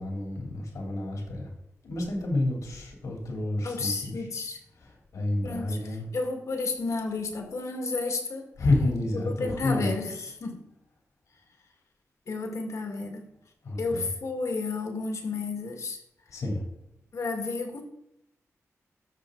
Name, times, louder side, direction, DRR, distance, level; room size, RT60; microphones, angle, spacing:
voice 1, 0.0-1.5 1.8-4.2 4.8-6.1 8.6-9.9 13.6-14.1 16.3-16.6, left 2 dB, 90° left, -1 dB, 3.3 m, -29 dB
voice 2, 3.6-4.6 5.4-8.5 9.1-10.7 12.3-13.2 13.8-16.0 17.1-17.8, left 3 dB, 65° left, 3 dB, 1.9 m, -32 dB
13.5 x 6.2 x 3.9 m, 0.81 s
wide cardioid pair, 105°, 6 cm